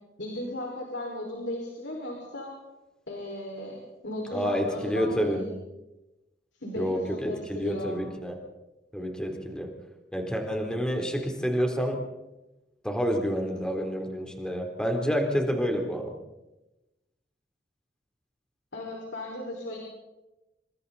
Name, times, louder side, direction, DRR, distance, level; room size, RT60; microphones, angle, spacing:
voice 1, 0.2-2.5 3.1-5.5 6.6-8.0 18.7-19.8, left 1 dB, 90° left, -1 dB, 5.3 m, -36 dB
voice 2, 4.3-5.5 6.8-8.4 8.9-9.7 10.1-12.0 12.8-16.1, equal, 5° left, 2 dB, 3.6 m, -28 dB
28.0 x 25.0 x 4.2 m, 1.0 s
head